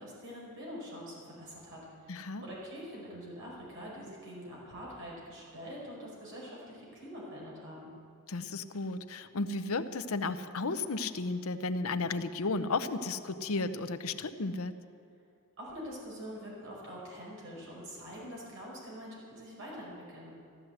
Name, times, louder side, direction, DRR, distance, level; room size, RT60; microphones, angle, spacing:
voice 1, 0.0-7.9 15.6-20.4, equal, 60° right, -4 dB, 5.3 m, -45 dB
voice 2, 2.1-2.4 8.3-14.7, left 3 dB, 70° left, 10 dB, 0.8 m, -34 dB
14.0 x 12.5 x 7.9 m, 2.4 s
head